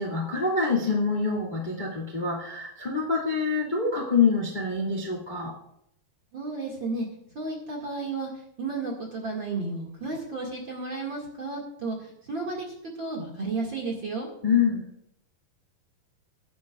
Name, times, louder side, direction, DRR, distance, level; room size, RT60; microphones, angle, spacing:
voice 1, 0.0-5.5 14.4-14.8, left 4 dB, 20° left, -1 dB, 1.4 m, -26 dB
voice 2, 6.3-7.1 7.3-8.3 8.6-12.7 13.0-14.3, right 3 dB, 40° right, -1 dB, 2.2 m, -32 dB
21.0 x 10.5 x 2.4 m, 0.75 s
omnidirectional pair, 4.4 m